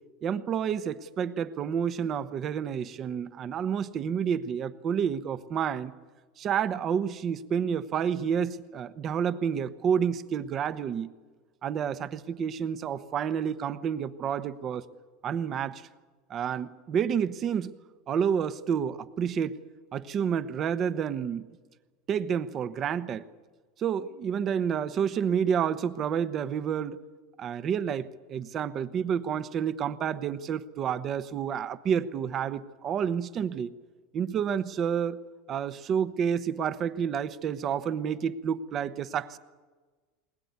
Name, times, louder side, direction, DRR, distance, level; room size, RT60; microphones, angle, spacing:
voice 1, 0.2-5.9 6.4-11.1 11.6-14.9 15.2-15.9 16.3-17.7 18.1-19.6 19.9-21.5 22.1-23.2 23.8-27.0 27.4-33.7 34.1-35.2 35.5-39.4, right 8 dB, 30° right, 14 dB, 1.0 m, -29 dB
20.5 x 20.5 x 9.5 m, 1.4 s
supercardioid pair, 150°, 0 cm